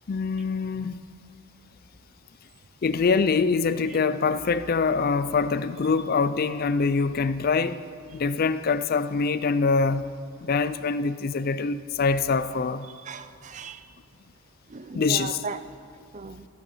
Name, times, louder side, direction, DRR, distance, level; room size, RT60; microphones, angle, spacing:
voice 1, 0.1-1.0 2.8-7.8 8.1-10.0 10.4-12.9 14.9-15.4, left 4 dB, 40° left, 0.4 m, -24 dB
voice 2, 12.8-13.9 14.7-15.6 16.1-16.5, right 4 dB, 35° right, 0.4 m, -37 dB
13.5 x 11.0 x 5.6 m
head